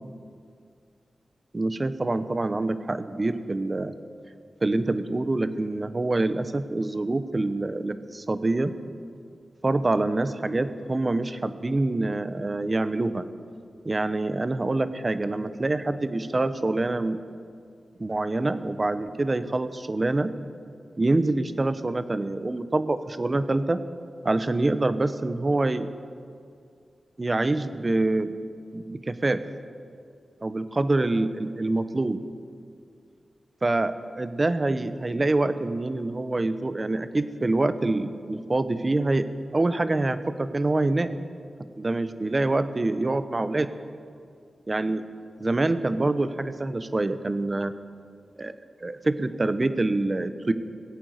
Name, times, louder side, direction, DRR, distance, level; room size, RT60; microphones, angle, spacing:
voice 1, 1.5-4.0 4.6-8.7 9.6-13.3 13.8-17.2 18.0-20.3 21.0-23.8 24.2-25.9 27.2-28.3 28.7-29.4 30.4-32.2 33.6-39.3 39.5-41.1 41.8-43.7 44.7-45.0 45.4-47.7 48.4-48.6 48.8-50.5, right 2 dB, 35° right, 12 dB, 0.8 m, -26 dB
17.0 x 8.8 x 8.1 m, 2.3 s
cardioid pair, 55°, 0 cm